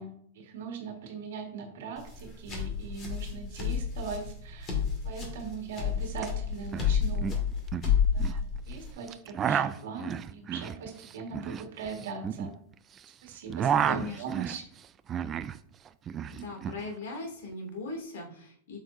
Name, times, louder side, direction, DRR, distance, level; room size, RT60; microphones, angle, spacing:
voice 1, 0.0-4.7 5.0-7.3 8.1-12.6 13.2-14.6, right 5 dB, 70° right, 2 dB, 1.6 m, -40 dB
sound 1, 2.0-8.9, left 7 dB, 25° left, 2.0 m, -30 dB
sound 2, 6.2-6.3 6.5-6.9 7.2-8.4 9.1-13.0 13.3-15.6 15.9-16.8, right 8 dB, 20° right, 0.3 m, -31 dB
voice 2, 13.9-14.2 16.3-18.8, left 3 dB, 75° left, 1 dB, 2.5 m, -39 dB
8.0 x 6.3 x 2.7 m, 0.63 s
supercardioid pair, 155°, 0 cm